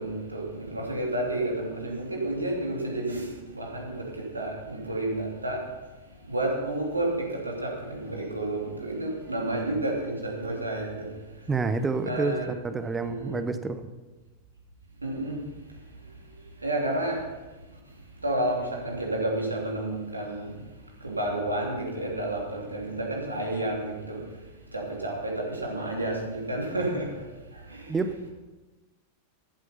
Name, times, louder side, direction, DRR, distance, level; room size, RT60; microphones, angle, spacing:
voice 1, 0.0-5.7 6.3-11.1 12.0-12.5 12.8-13.5 15.0-15.4 16.6-17.3 18.2-20.6 21.0-24.2 24.7-27.2 27.5-28.0, right 1 dB, 80° right, -1 dB, 3.0 m, -30 dB
voice 2, 11.5-12.4 12.6-13.8 27.9-28.3, right 4 dB, 15° right, 10 dB, 0.9 m, -28 dB
14.5 x 8.2 x 5.7 m, 1.2 s
figure-of-eight pair, 90°, 0 cm